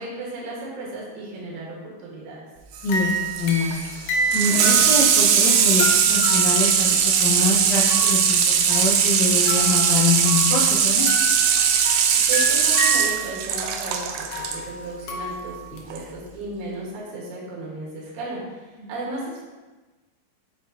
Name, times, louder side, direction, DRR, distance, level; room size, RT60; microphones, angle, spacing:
voice 1, 0.0-2.4 12.3-18.4 18.9-19.4, right 2 dB, 65° right, -5 dB, 2.9 m, -34 dB
Water tap faucet / Sink (filling or washing), 2.7-14.6 15.9-16.0, right 7 dB, 85° right, 2.3 m, -20 dB
voice 2, 2.8-3.7 4.3-11.1 18.8-18.9, left 3 dB, 70° left, -8 dB, 1.7 m, -25 dB
sound 1, 2.9-8.3 8.7-10.7 11.0-15.8, equal, 85° left, 2.0 m, -30 dB
7.2 x 5.0 x 2.7 m, 1.2 s
omnidirectional pair, 5.0 m